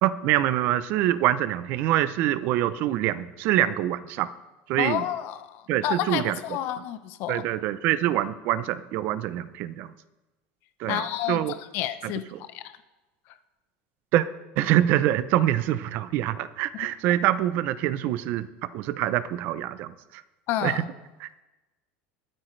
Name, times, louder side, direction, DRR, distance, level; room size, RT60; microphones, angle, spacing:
voice 1, 0.0-4.3 4.7-5.1 5.7-6.4 7.3-9.9 10.8-11.5 12.0-12.4 14.1-14.3 14.6-20.2 20.6-20.9 21.2-21.3, right 13 dB, 45° right, 15 dB, 0.6 m, -25 dB
voice 2, 4.8-7.4 10.9-11.4 11.7-12.7 16.7-16.9 20.5-20.9, left 12 dB, 50° left, 11 dB, 0.8 m, -30 dB
22.0 x 8.8 x 3.3 m, 1.1 s
cardioid pair, 170°, 5 cm